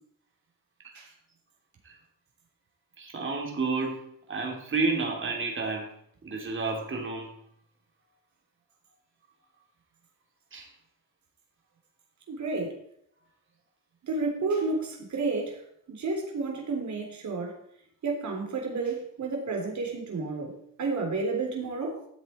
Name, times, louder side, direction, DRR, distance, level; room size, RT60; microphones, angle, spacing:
voice 1, 3.0-5.9 6.2-7.3 10.5-10.7, right 3 dB, 35° right, 1 dB, 3.0 m, -30 dB
voice 2, 12.3-12.7 14.0-15.5 15.9-17.5 18.0-20.5 20.8-22.0, right 3 dB, 55° right, 1 dB, 3.5 m, -31 dB
13.0 x 7.8 x 4.4 m, 0.69 s
cardioid pair, 130°, 34 cm